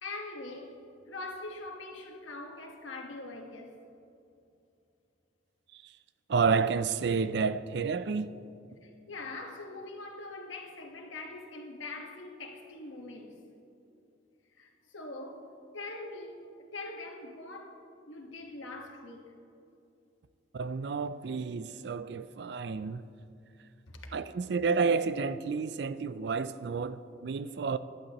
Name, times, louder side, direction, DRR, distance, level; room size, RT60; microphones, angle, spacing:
voice 1, 0.0-3.8 8.8-13.4 14.5-19.3 23.9-24.0, left 2 dB, 85° left, 1.4 m, -43 dB
voice 2, 6.3-8.3 20.5-23.0 24.1-27.8, right 5 dB, 60° right, 0.4 m, -30 dB
15.0 x 11.5 x 3.0 m
head